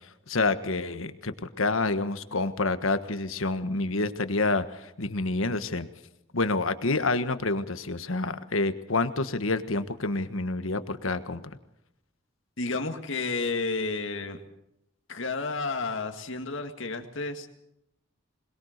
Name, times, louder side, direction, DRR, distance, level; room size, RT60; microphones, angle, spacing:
voice 1, 0.3-5.9 6.3-11.4, left 3 dB, 80° left, 10 dB, 1.5 m, -28 dB
voice 2, 12.6-14.4 15.1-17.6, left 3 dB, 65° left, 5 dB, 2.0 m, -31 dB
22.5 x 21.0 x 6.6 m, 0.81 s
head